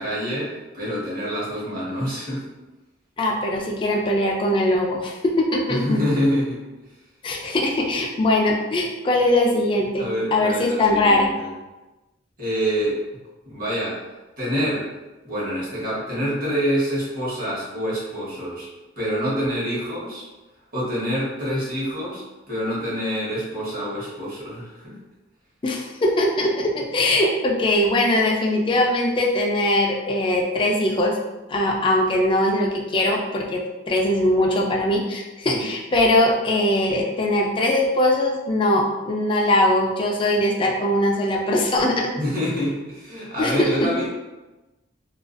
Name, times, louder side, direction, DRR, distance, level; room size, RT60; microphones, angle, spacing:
voice 1, 0.0-2.5 5.7-6.6 10.0-11.5 12.4-13.0 13.4-14.0 14.4-14.9 15.2-18.7 19.0-20.2 20.7-24.9 35.4-35.7 42.2-44.1, equal, 50° right, -7 dB, 1.0 m, -26 dB
voice 2, 3.2-6.0 7.2-11.3 25.6-31.2 31.5-42.1 43.4-43.9, left 1 dB, 25° left, 0 dB, 0.3 m, -21 dB
2.3 x 2.3 x 2.4 m, 1.1 s
head